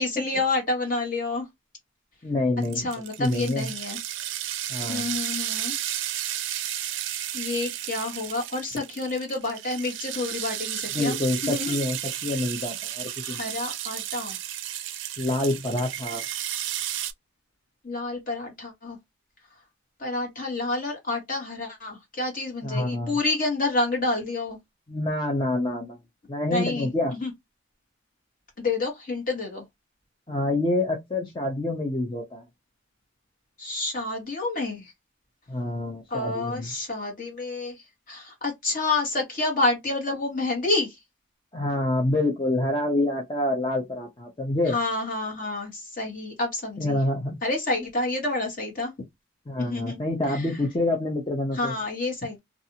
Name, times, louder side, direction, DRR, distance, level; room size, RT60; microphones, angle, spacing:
voice 1, 0.0-1.5 2.8-4.0 4.9-5.7 7.3-11.1 11.4-11.8 13.2-14.4 17.8-19.0 20.0-24.6 26.5-26.9 27.2-27.3 28.6-29.6 33.6-34.9 36.1-37.8 38.1-40.9 44.7-47.0 47.4-48.9 49.6-50.0 50.3-50.4 51.6-52.4, left 2 dB, 45° left, 1.3 m, -28 dB
voice 2, 2.2-2.9 3.2-3.7 4.7-5.1 10.9-13.5 15.2-16.2 22.6-23.2 24.9-26.0 26.3-27.1 30.3-32.5 35.5-36.7 41.5-44.8 46.8-47.4 49.5-51.7, left 2 dB, 25° left, 0.5 m, -27 dB
sound 1, 2.6-17.1, right 12 dB, 70° right, 0.4 m, -33 dB
2.5 x 2.4 x 2.8 m
head